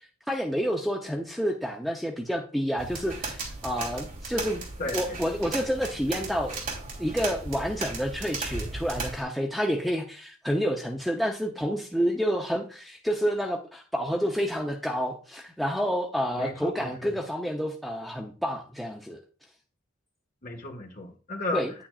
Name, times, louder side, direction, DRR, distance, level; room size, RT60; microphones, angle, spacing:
voice 1, 0.3-4.6 4.9-6.6 7.0-19.2 21.5-21.7, equal, ahead, 0 dB, 0.6 m, -29 dB
sound 1, 2.8-9.2, right 3 dB, 40° right, 2.9 m, -36 dB
voice 2, 4.8-5.2 16.4-17.1 20.4-21.6, left 2 dB, 40° left, 2 dB, 1.5 m, -34 dB
9.5 x 8.7 x 2.4 m, 0.38 s
head